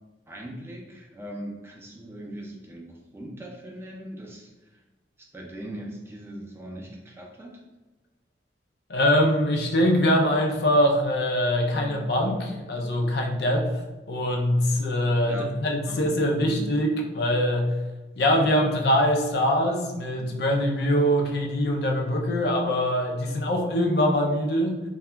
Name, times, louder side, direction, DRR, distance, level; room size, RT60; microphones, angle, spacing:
voice 1, 0.3-4.8 5.3-7.6 11.7-11.9 15.2-15.5 15.8-16.1 16.4-16.7 23.2-23.4, right 1 dB, 15° right, -2 dB, 0.4 m, -40 dB
voice 2, 8.9-13.7 14.1-17.7 18.2-24.8, equal, 65° left, 2 dB, 0.5 m, -23 dB
2.8 x 2.2 x 3.3 m, 1.1 s
head